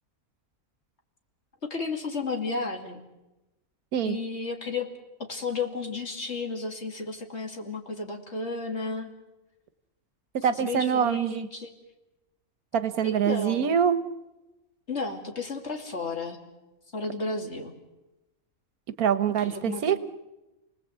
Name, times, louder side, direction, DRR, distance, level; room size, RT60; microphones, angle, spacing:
voice 1, 1.6-3.0 4.0-4.9 5.2-9.1 10.6-11.7 13.0-13.8 14.9-16.4 16.9-17.7 19.4-19.8, left 3 dB, 50° left, 1 dB, 3.0 m, -33 dB
voice 2, 10.4-11.5 12.7-14.0 19.0-20.0, right 8 dB, 85° right, 13 dB, 1.5 m, -24 dB
29.5 x 19.5 x 8.1 m, 1.0 s
omnidirectional pair, 1.5 m